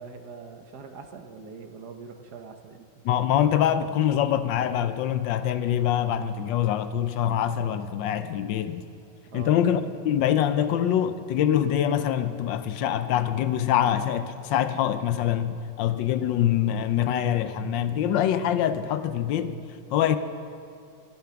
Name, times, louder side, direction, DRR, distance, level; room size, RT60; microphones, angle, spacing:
voice 1, 0.0-2.8 5.5-5.7 9.3-9.6, right 5 dB, 65° right, 6 dB, 1.4 m, -43 dB
voice 2, 3.0-8.8 9.3-19.6 19.9-20.2, left 10 dB, 80° left, 11 dB, 1.3 m, -24 dB
13.5 x 11.5 x 5.9 m, 2.5 s
omnidirectional pair, 2.0 m